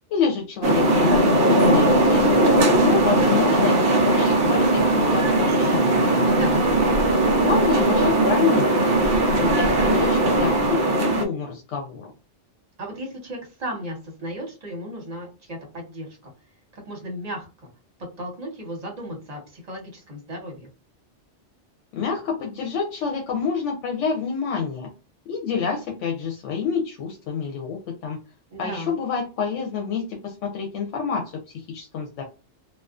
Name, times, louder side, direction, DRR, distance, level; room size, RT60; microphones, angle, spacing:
voice 1, 0.1-2.4 2.8-6.7 7.4-8.9 9.4-12.1 21.9-24.9 25.3-28.2 28.6-32.2, left 6 dB, 85° left, 1 dB, 0.9 m, -28 dB
sound 1, 0.6-11.3, right 1 dB, 60° right, 0.7 m, -19 dB
voice 2, 6.3-7.1 12.8-16.3 16.7-17.7 18.0-20.7 28.5-29.0, equal, 35° right, 0 dB, 1.0 m, -35 dB
2.4 x 2.3 x 2.4 m, 0.32 s
omnidirectional pair, 1.2 m